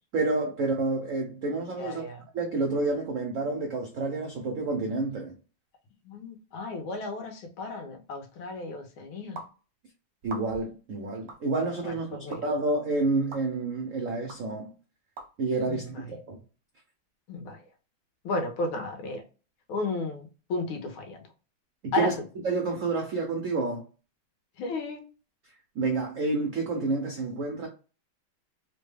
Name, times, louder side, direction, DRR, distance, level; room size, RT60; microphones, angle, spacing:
voice 1, 0.1-2.0 2.3-5.3 10.2-12.1 12.4-14.7 15.4-16.4 21.8-22.2 22.4-23.8 25.8-27.7, right 3 dB, 85° right, 0.7 m, -29 dB
voice 2, 1.8-2.2 6.1-9.4 11.8-12.4 15.7-16.1 17.3-17.6 18.3-19.2 19.7-21.2 21.9-22.1 24.6-25.0, left 3 dB, 75° left, 1.6 m, -33 dB
sound 1, 9.4-9.5 10.2-10.7 11.3-11.4 12.3-12.4 13.3-13.4 14.3-14.4 15.2-15.3, right 2 dB, 65° right, 0.9 m, -41 dB
3.7 x 2.2 x 3.3 m
omnidirectional pair, 2.3 m